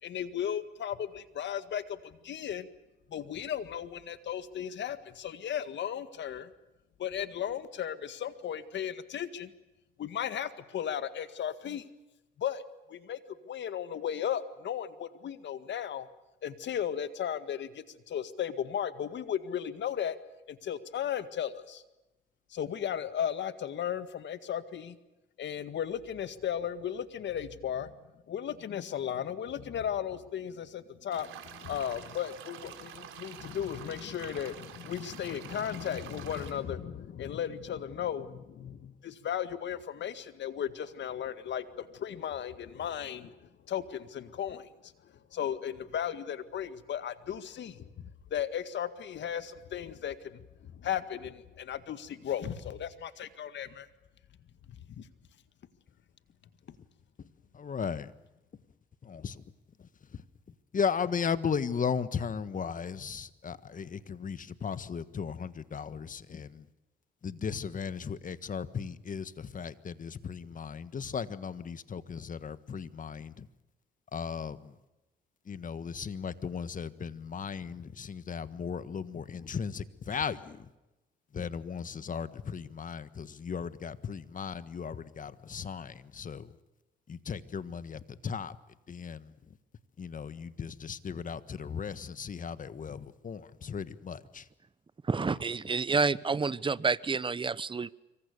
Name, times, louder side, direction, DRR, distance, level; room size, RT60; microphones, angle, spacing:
voice 1, 0.0-2.7 3.1-6.5 7.0-9.5 10.0-11.9 12.4-12.6 12.9-13.2 13.4-16.1 16.4-20.2 20.5-21.8 22.5-25.0 25.4-28.0 28.3-53.9 54.7-55.1, left 9 dB, 65° left, 1.9 m, -36 dB
sound 1, 31.1-36.5, right 9 dB, 85° right, 3.9 m, -47 dB
voice 2, 57.5-58.1 59.0-59.4 60.7-66.6 67.2-73.5 74.1-74.7 75.5-80.7 81.3-86.5 87.1-88.6 88.9-89.3 90.0-94.5, left 6 dB, 40° left, 1.5 m, -36 dB
voice 3, 95.0-97.9, right 4 dB, 25° right, 0.9 m, -29 dB
26.0 x 24.5 x 6.8 m
cardioid pair, 90°, 20 cm